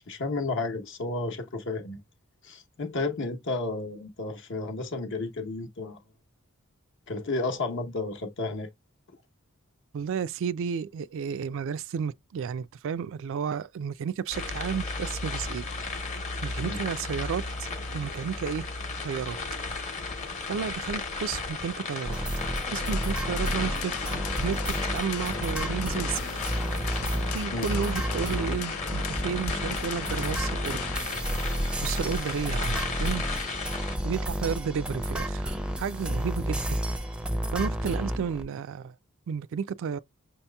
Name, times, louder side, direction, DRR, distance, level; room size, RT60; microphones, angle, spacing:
voice 1, 0.1-2.0 2.4-6.0 7.1-8.7 16.6-16.8 27.5-27.7, left 3 dB, 60° left, 0.9 m, -32 dB
voice 2, 9.9-15.7 16.4-17.7 17.9-18.7 19.0-19.4 20.5-22.2 22.7-26.3 27.3-31.0 31.8-33.2 34.0-36.8 37.5-38.9 39.3-40.0, right 7 dB, 65° right, 0.3 m, -32 dB
sound 1, 14.3-34.0, left 3 dB, 35° left, 0.9 m, -35 dB
sound 2, 22.0-38.4, right 1 dB, 5° right, 0.5 m, -31 dB
sound 3, 22.7-31.0, left 9 dB, 80° left, 0.4 m, -39 dB
5.7 x 2.8 x 2.2 m
head